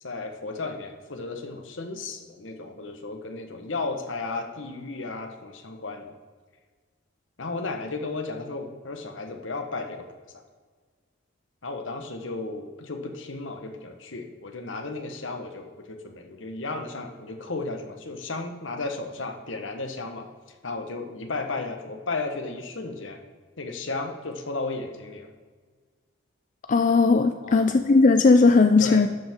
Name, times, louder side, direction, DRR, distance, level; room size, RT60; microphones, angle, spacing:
voice 1, 0.0-6.1 7.4-10.1 11.6-20.3 20.6-23.2 23.6-25.3 27.4-27.7 28.8-29.0, left 3 dB, 75° left, 5 dB, 1.2 m, -34 dB
voice 2, 26.7-29.1, left 3 dB, 40° left, 7 dB, 0.4 m, -18 dB
11.5 x 7.9 x 3.7 m, 1.5 s
head